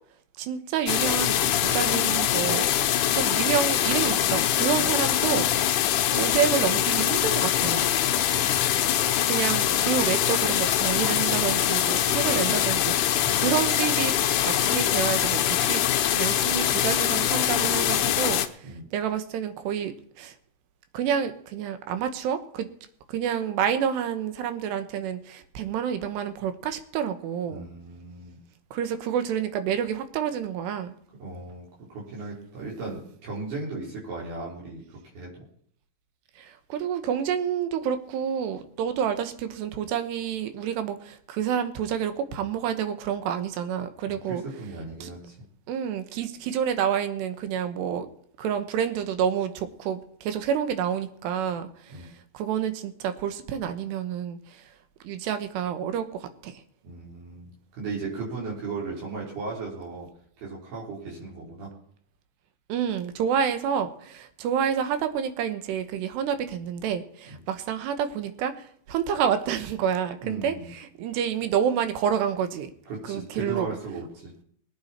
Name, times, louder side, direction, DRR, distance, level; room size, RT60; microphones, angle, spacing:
voice 1, 0.4-2.7 3.1-7.9 9.2-14.1 14.4-15.8 16.1-20.3 20.9-22.7 23.1-27.7 28.7-30.9 36.4-44.4 45.0-45.1 45.7-48.1 48.4-52.1 52.3-54.6 55.0-56.6 62.7-72.7 73.1-73.8, right 8 dB, 90° right, 9 dB, 3.2 m, -29 dB
sound 1, 0.9-18.5, left 11 dB, 80° left, 1.8 m, -23 dB
voice 2, 8.1-9.0 12.2-12.6 13.2-13.5 18.6-18.9 27.5-28.4 31.2-35.3 44.1-45.4 51.9-52.1 56.8-60.1 60.4-61.7 67.3-67.4 70.2-70.7 72.9-74.3, right 3 dB, 70° right, -5 dB, 5.7 m, -37 dB
20.5 x 9.5 x 4.3 m, 0.62 s
omnidirectional pair, 4.7 m